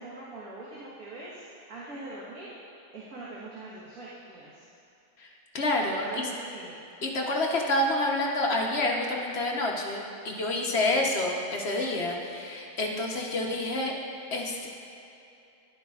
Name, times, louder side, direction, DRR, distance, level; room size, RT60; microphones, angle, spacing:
voice 1, 0.0-2.5 2.9-4.7 6.0-6.7 10.9-11.1, right 2 dB, 75° right, -8 dB, 1.8 m, -42 dB
voice 2, 5.5-6.2 7.0-13.9 14.3-14.7, left 1 dB, 50° left, 0 dB, 1.0 m, -28 dB
11.5 x 11.0 x 2.4 m, 2.8 s
omnidirectional pair, 1.6 m